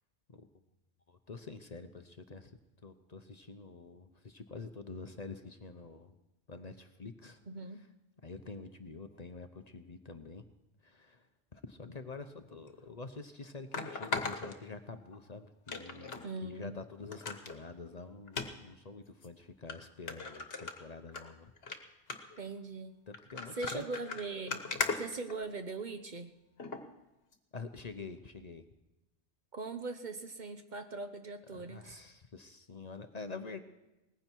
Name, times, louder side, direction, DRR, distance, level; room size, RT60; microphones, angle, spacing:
voice 1, 1.1-2.5 2.8-6.1 6.5-7.4 8.2-10.4 10.8-11.3 11.5-21.5 23.1-23.9 27.5-28.6 31.5-33.6, left 4 dB, 40° left, 8 dB, 0.8 m, -47 dB
voice 2, 7.5-7.8 16.2-16.8 22.4-22.9 23.5-24.6 25.0-26.3 29.5-32.0, right 3 dB, 45° right, 8 dB, 0.9 m, -40 dB
sound 1, 12.7-12.8 13.7-15.2 15.7-16.2 16.6-16.7 17.1-17.6 18.3-18.5 19.2-19.3 19.7-19.8 20.1-21.2 21.6-21.8 22.1-22.4 23.1-25.8 26.6-26.8 27.3-27.4, left 4 dB, 60° left, 1.5 m, -38 dB
19.0 x 15.5 x 4.6 m, 0.98 s
omnidirectional pair, 1.1 m